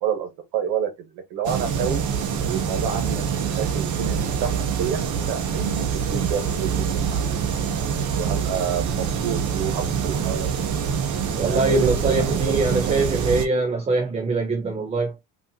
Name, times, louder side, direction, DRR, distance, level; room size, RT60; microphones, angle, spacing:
voice 1, 0.0-2.0 2.4-5.0 5.3-7.5 8.1-10.5 11.4-13.2, right 7 dB, 70° right, 1.2 m, -29 dB
sound 1, 1.4-13.5, right 7 dB, 45° right, 0.8 m, -25 dB
voice 2, 11.4-15.1, right 3 dB, 15° right, 0.5 m, -23 dB
3.3 x 2.7 x 2.7 m
supercardioid pair, 95°, 42 cm